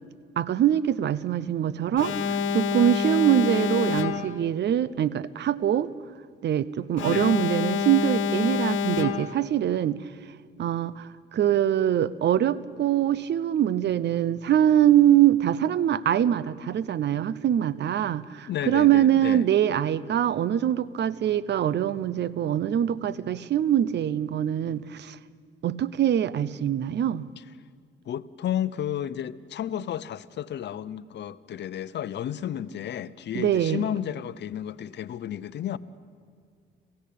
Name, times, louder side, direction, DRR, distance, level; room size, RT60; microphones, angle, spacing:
voice 1, 0.4-5.9 6.4-10.0 10.6-25.2 25.6-27.3 33.3-33.9, right 10 dB, 60° right, 0.8 m, -23 dB
Alarm, 2.0-4.5 7.0-9.5, left 5 dB, 80° left, 1.5 m, -27 dB
voice 2, 18.5-19.5 28.1-35.8, left 10 dB, 60° left, 0.8 m, -32 dB
27.0 x 16.5 x 8.5 m
cardioid pair, 90°, 20 cm